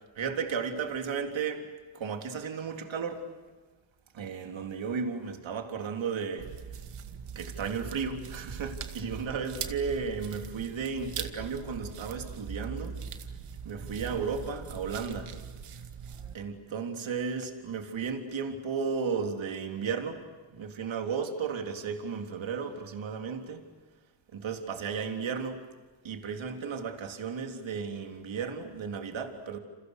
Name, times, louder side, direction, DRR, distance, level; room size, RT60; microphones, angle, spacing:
voice 1, 0.2-1.7 1.9-3.2 4.1-6.5 7.4-13.0 13.6-15.3 16.3-23.7 24.3-25.6 26.0-29.6, right 5 dB, 65° right, 4 dB, 3.6 m, -34 dB
sound 1, 6.4-16.3, right 7 dB, 85° right, 2.4 m, -41 dB
30.0 x 29.5 x 6.7 m, 1.3 s
cardioid pair, 105°, 49 cm